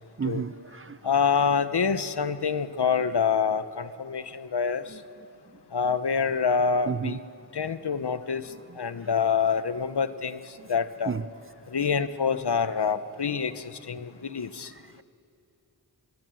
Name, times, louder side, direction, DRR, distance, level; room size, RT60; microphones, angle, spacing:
voice 1, 0.2-1.0 4.9-5.0 6.9-7.2 10.6-10.7 11.1-11.3, right 6 dB, 30° right, 0.5 m, -31 dB
voice 2, 1.0-4.8 5.7-7.2 7.5-8.4 8.8-10.4 10.7-11.1 11.7-14.7, left 6 dB, 65° left, 0.9 m, -26 dB
23.0 x 22.5 x 7.8 m
wide cardioid pair, 55°, 42 cm